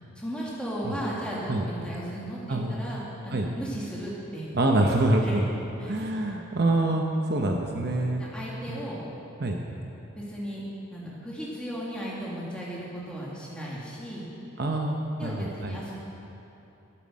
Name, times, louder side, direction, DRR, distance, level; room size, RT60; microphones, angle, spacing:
voice 1, 0.2-4.5 5.2-5.4 5.8-5.9 8.2-9.0 10.1-10.6 10.9-14.3 15.2-15.9, equal, 5° left, -6 dB, 2.1 m, -36 dB
voice 2, 4.5-5.4 5.8-8.3 8.7-8.8 9.4-9.6 14.6-15.8, right 2 dB, 50° right, 2 dB, 0.8 m, -26 dB
13.0 x 9.0 x 6.2 m, 2.9 s
head